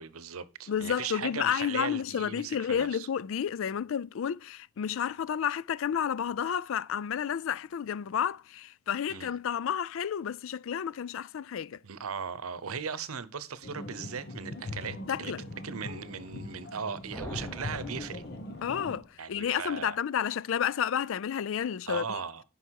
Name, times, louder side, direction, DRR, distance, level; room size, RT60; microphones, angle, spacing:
voice 1, 0.0-3.1 9.1-9.3 11.8-15.3 15.6-18.2 19.2-20.0 21.9-22.4, right 6 dB, 85° right, 0.8 m, -38 dB
voice 2, 0.7-11.8 15.1-15.4 18.6-22.2, left 8 dB, 65° left, 0.3 m, -31 dB
sound 1, 13.6-19.0, left 2 dB, 50° left, 1.1 m, -41 dB
sound 2, 17.1-19.1, equal, 10° left, 1.0 m, -43 dB
9.8 x 5.5 x 4.6 m
head